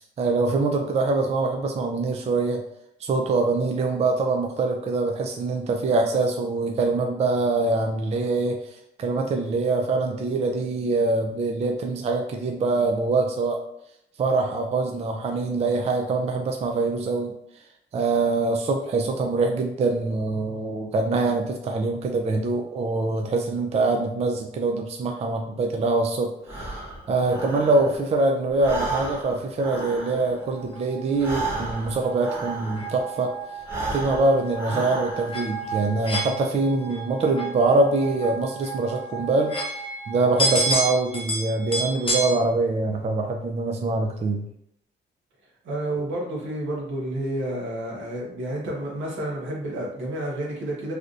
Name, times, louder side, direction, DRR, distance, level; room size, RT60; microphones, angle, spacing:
voice 1, 0.0-2.6 3.0-13.6 14.2-17.3 17.9-26.8 27.1-33.3 33.9-39.8 40.1-44.4 46.0-46.1, right 3 dB, 35° right, 3 dB, 0.4 m, -24 dB
Breathing, 26.4-28.2 28.5-33.1 33.6-35.5, right 2 dB, 15° right, 1.1 m, -33 dB
sound 1, 30.5-42.3, right 1 dB, 25° left, 0.7 m, -31 dB
voice 2, 45.6-50.9, right 1 dB, 75° right, -2 dB, 1.1 m, -30 dB
3.3 x 2.6 x 2.5 m, 0.75 s
cardioid pair, 90°, 20 cm